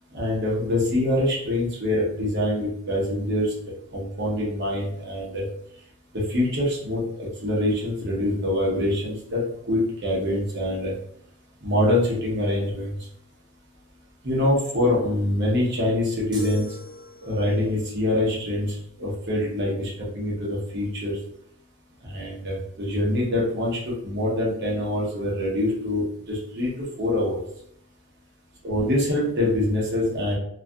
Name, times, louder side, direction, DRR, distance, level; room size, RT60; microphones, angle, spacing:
voice 1, 0.1-3.5 3.9-5.4 6.1-9.4 9.7-10.9 11.6-12.9 14.2-16.7 17.2-21.2 22.0-26.7 27.0-27.4 28.6-30.3, left 1 dB, 55° right, -5 dB, 0.9 m, -25 dB
sound 1, 16.3-17.7, left 2 dB, 20° right, 0.5 m, -40 dB
2.6 x 2.4 x 2.3 m, 0.71 s
head